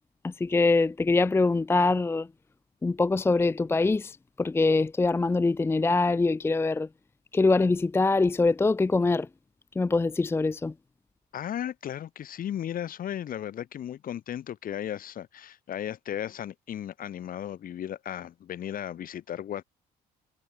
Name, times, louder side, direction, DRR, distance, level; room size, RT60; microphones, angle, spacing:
voice 1, 0.2-2.3 2.8-6.9 7.3-9.3 9.8-10.7, left 3 dB, 15° left, 0.6 m, -24 dB
voice 2, 11.3-19.6, left 10 dB, 55° left, 5.9 m, -35 dB
cardioid pair, 110°, 17 cm